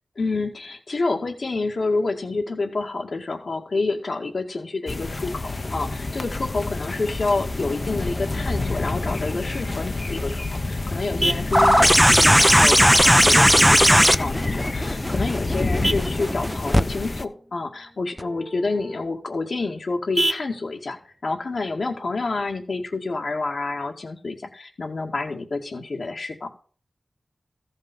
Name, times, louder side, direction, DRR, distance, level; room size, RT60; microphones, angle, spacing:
voice 1, 0.2-21.0 21.2-26.5, left 3 dB, 75° left, 3 dB, 2.0 m, -28 dB
sound 1, 4.9-17.3, left 2 dB, 45° left, 0.8 m, -28 dB
Vehicle horn car horn honking, 9.9-22.9, right 1 dB, 35° right, 0.8 m, -35 dB
sound 2, 11.5-16.8 18.2-18.3, equal, 5° right, 0.6 m, -16 dB
14.5 x 5.4 x 5.4 m, 0.41 s
cardioid pair, 50°, 0 cm